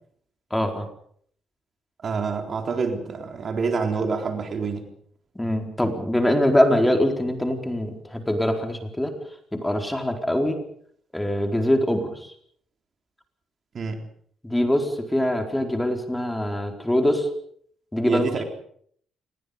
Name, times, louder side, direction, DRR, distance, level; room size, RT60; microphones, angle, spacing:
voice 1, 0.5-0.9 5.3-9.1 9.5-10.6 11.1-12.3 14.4-17.3 17.9-18.3, left 1 dB, 5° left, 4 dB, 4.5 m, -23 dB
voice 2, 2.0-4.9 13.7-14.0 18.0-18.4, right 4 dB, 50° right, 4 dB, 4.0 m, -27 dB
27.5 x 21.5 x 5.3 m, 0.63 s
cardioid pair, 90°, 0 cm